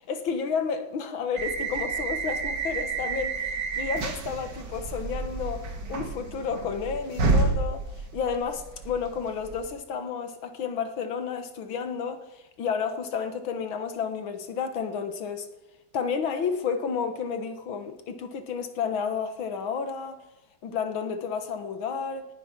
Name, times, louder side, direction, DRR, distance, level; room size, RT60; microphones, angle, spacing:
voice 1, 0.1-7.8 8.1-15.5 15.9-20.2 20.6-22.3, left 6 dB, 85° left, 2.2 m, -31 dB
sound 1, 1.4-9.7, right 3 dB, 60° right, 2.4 m, -30 dB
18.0 x 9.5 x 6.0 m
omnidirectional pair, 2.1 m